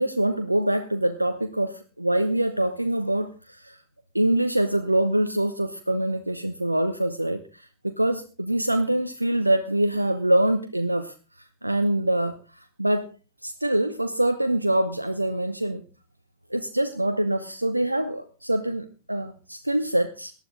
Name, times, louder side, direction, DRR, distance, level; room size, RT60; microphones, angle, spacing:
voice 1, 0.0-3.8 4.1-11.1 11.6-13.1 13.4-15.8 16.5-20.3, right 1 dB, 85° right, 9 dB, 0.8 m, -24 dB
18.0 x 12.0 x 3.7 m, 0.35 s
figure-of-eight pair, 90°, 0 cm